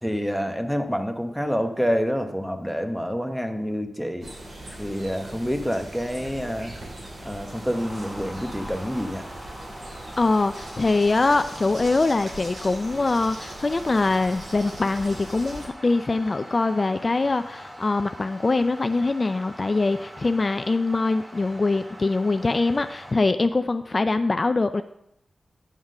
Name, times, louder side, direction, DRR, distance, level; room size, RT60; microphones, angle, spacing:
voice 1, 0.0-4.3 4.8-6.7 7.2-9.3, equal, ahead, 6 dB, 1.1 m, -27 dB
sound 1, 4.2-15.7, right 1 dB, 65° right, 2.8 m, -40 dB
sound 2, 6.0-23.1, equal, 20° right, 1.4 m, -43 dB
voice 2, 10.2-24.8, left 3 dB, 50° left, 9 dB, 0.4 m, -23 dB
9.5 x 3.6 x 6.4 m, 0.76 s
cardioid pair, 45°, 0 cm